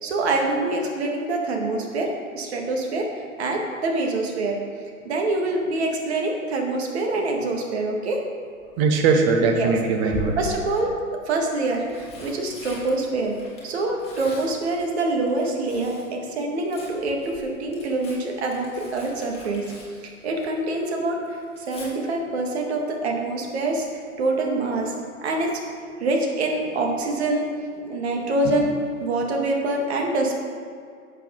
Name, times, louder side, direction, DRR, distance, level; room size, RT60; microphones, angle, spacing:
voice 1, 0.0-4.6 5.0-8.2 9.5-9.7 10.4-10.9 11.3-13.4 13.6-19.6 20.0-21.2 21.6-24.9 25.2-25.5 26.0-27.5 27.9-28.7 29.0-30.4, right 2 dB, 50° right, 1 dB, 2.0 m, -25 dB
Tearing, 8.6-9.1 10.1-10.8 11.6-16.1 16.4-20.7 21.0-21.9 23.7-24.0 24.3-24.4, left 1 dB, 15° left, 2.4 m, -39 dB
voice 2, 8.8-10.3, right 4 dB, 10° right, 3 dB, 0.5 m, -20 dB
11.0 x 7.6 x 3.9 m, 2.2 s
figure-of-eight pair, 115°, 42 cm